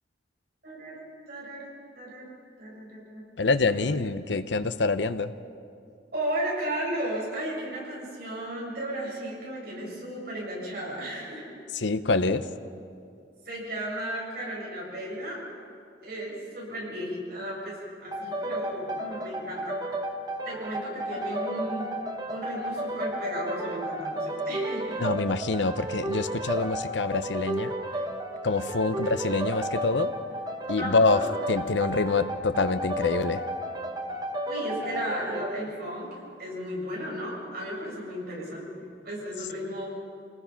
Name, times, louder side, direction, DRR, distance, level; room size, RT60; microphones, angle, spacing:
voice 1, 0.6-1.7 1.9-4.0 6.1-11.6 13.4-15.4 16.0-19.8 20.5-21.9 22.3-25.0 30.8-31.2 34.5-36.1 36.4-39.9, right 1 dB, 55° right, -4 dB, 7.1 m, -35 dB
voice 2, 3.4-5.3 11.7-12.5 25.0-27.7 28.4-30.1 30.7-31.2 31.5-33.4, left 3 dB, 75° left, 12 dB, 0.8 m, -26 dB
sound 1, 18.1-35.5, right 1 dB, 20° right, 1.3 m, -33 dB
26.5 x 19.0 x 5.8 m, 2.4 s
head